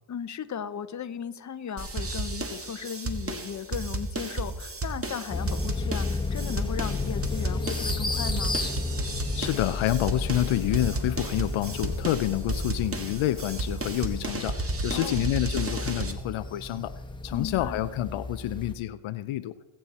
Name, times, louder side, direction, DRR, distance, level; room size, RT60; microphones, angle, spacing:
voice 1, 0.1-8.6 14.9-15.3 17.3-17.8, left 8 dB, 35° left, 12 dB, 0.9 m, -36 dB
sound 1, 1.8-16.1, right 2 dB, 30° right, 1.7 m, -33 dB
sound 2, 5.3-18.8, left 3 dB, 10° left, 1.4 m, -33 dB
voice 2, 9.4-16.9 17.2-19.5, left 14 dB, 75° left, 11 dB, 0.7 m, -28 dB
21.0 x 7.7 x 4.2 m, 1.1 s
cardioid pair, 80°, 49 cm